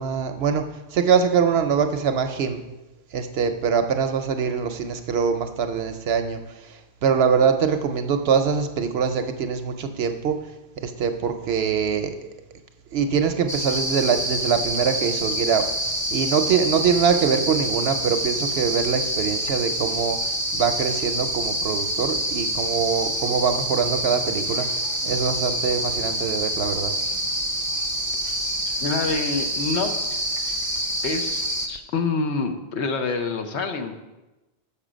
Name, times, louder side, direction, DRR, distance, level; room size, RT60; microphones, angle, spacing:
voice 1, 0.0-2.6 3.1-6.4 7.0-10.4 10.8-12.2 12.9-15.7 16.1-20.2 20.5-24.7 25.0-26.9, right 6 dB, 65° right, 7 dB, 0.7 m, -23 dB
sound 1, 13.5-31.7, right 1 dB, 20° right, 0.7 m, -27 dB
voice 2, 28.8-29.9 31.0-33.9, left 4 dB, 65° left, 6 dB, 1.0 m, -26 dB
6.7 x 5.7 x 5.0 m, 1.0 s
omnidirectional pair, 1.3 m